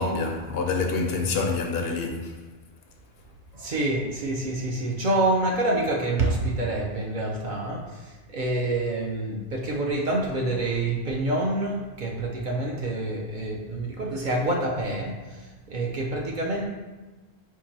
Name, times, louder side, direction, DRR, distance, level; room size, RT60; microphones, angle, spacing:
voice 1, 0.0-2.3, left 3 dB, 70° left, 0.8 m, -27 dB
voice 2, 3.5-16.7, right 2 dB, 55° right, 0.6 m, -27 dB
4.6 x 2.5 x 4.1 m
omnidirectional pair, 1.1 m